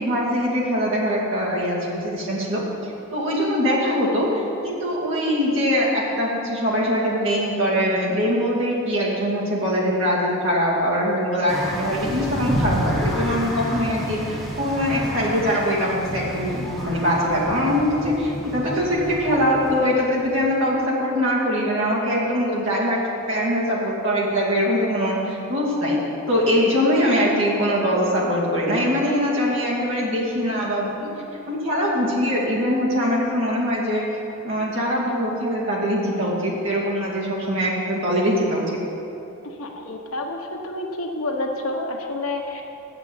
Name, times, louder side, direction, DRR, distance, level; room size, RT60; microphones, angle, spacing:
voice 1, 0.0-23.0 23.3-26.0 26.3-31.1 31.5-34.0 34.4-38.8, equal, 65° right, -5 dB, 2.5 m, -22 dB
sound 1, 11.5-20.6, equal, ahead, 1.4 m, -30 dB
voice 2, 39.4-42.6, left 2 dB, 85° left, 2 dB, 1.1 m, -29 dB
7.5 x 7.1 x 8.3 m, 2.9 s
head